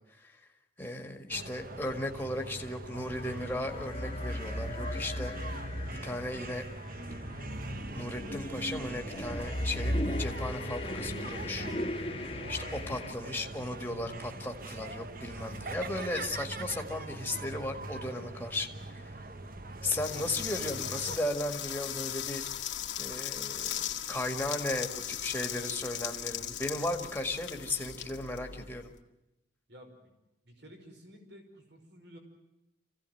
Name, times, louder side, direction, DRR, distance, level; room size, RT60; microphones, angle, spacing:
voice 1, 0.8-5.3 6.0-6.7 7.6-11.7 12.5-19.2 19.8-22.4 23.0-28.9, left 1 dB, 10° left, 3 dB, 1.9 m, -36 dB
sound 1, 1.3-21.2, right 2 dB, 45° right, 1.0 m, -42 dB
sound 2, 2.9-13.1, left 1 dB, 30° left, 1.5 m, -37 dB
sound 3, 19.9-28.9, left 11 dB, 90° left, 2.1 m, -38 dB
voice 2, 29.7-30.1 30.4-32.2, equal, 65° right, 3 dB, 5.4 m, -53 dB
27.0 x 16.5 x 9.3 m, 0.95 s
head